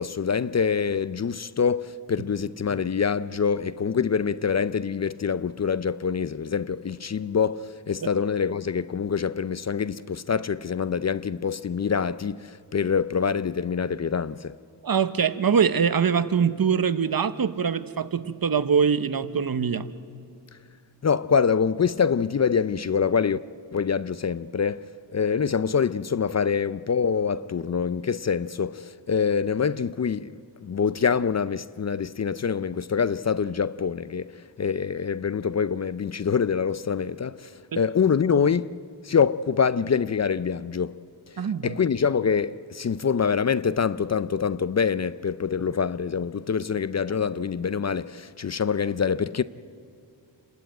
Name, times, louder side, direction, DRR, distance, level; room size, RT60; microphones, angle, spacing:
voice 1, 0.0-14.6 21.0-23.4 23.7-30.3 30.6-41.0 41.6-49.4, left 6 dB, 40° left, 0.5 m, -25 dB
voice 2, 14.8-19.9 37.7-37.8 41.4-41.7, right 6 dB, 55° right, 0.9 m, -23 dB
28.5 x 12.5 x 9.1 m
wide cardioid pair, 70°, 42 cm